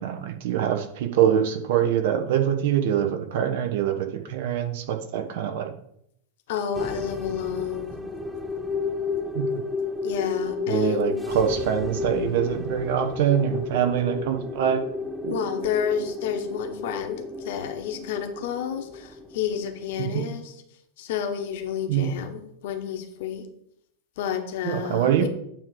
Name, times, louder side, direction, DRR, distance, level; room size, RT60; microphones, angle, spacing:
voice 1, 0.0-5.7 9.3-9.4 10.7-14.8 15.2-15.4 20.0-20.3 21.9-22.1 24.6-25.3, right 9 dB, 55° right, 6 dB, 1.1 m, -24 dB
voice 2, 6.5-8.0 10.0-11.2 15.3-20.5 21.0-23.5 24.2-25.3, left 8 dB, 55° left, 6 dB, 1.1 m, -30 dB
sound 1, 6.7-20.3, left 4 dB, ahead, 0.7 m, -32 dB
9.1 x 3.2 x 6.5 m, 0.73 s
figure-of-eight pair, 90°, 0 cm